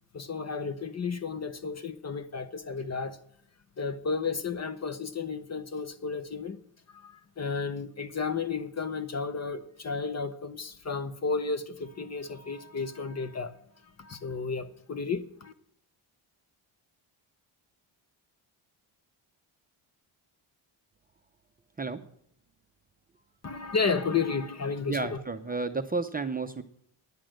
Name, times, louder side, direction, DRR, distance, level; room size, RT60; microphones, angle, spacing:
voice 1, 0.1-3.2 3.8-6.6 6.9-13.6 14.0-15.5 23.4-25.2, left 5 dB, 30° left, 12 dB, 0.8 m, -32 dB
voice 2, 24.9-26.6, right 3 dB, 20° right, 6 dB, 0.6 m, -31 dB
10.5 x 8.4 x 7.6 m, 0.69 s
wide cardioid pair, 140°, 49 cm